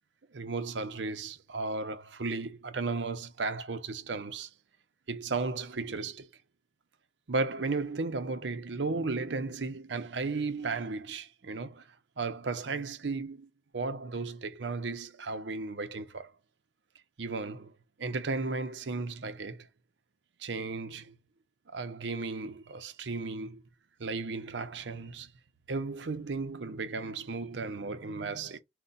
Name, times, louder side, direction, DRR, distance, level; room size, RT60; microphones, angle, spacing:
voice 1, 0.3-4.5 5.1-6.3 7.3-16.3 17.2-17.7 18.0-19.7 20.4-21.2 21.7-23.6 24.0-25.3 25.7-28.6, right 3 dB, 85° right, 0.7 m, -35 dB
4.8 x 2.2 x 4.0 m
head